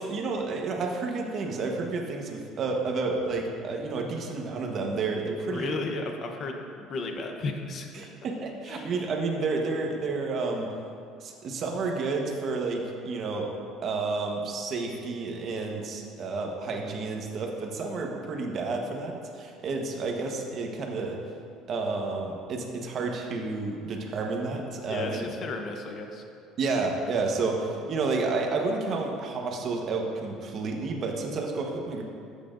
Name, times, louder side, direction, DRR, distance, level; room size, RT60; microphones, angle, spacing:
voice 1, 0.0-5.7 7.9-10.7 11.2-13.5 13.8-21.2 21.7-25.2 26.6-32.0, right 3 dB, 45° right, 1 dB, 1.2 m, -30 dB
voice 2, 5.5-8.1 8.7-8.9 24.9-26.2, left 3 dB, 40° left, 3 dB, 1.0 m, -34 dB
12.5 x 8.4 x 2.6 m, 2.4 s
cardioid pair, 130°, 0 cm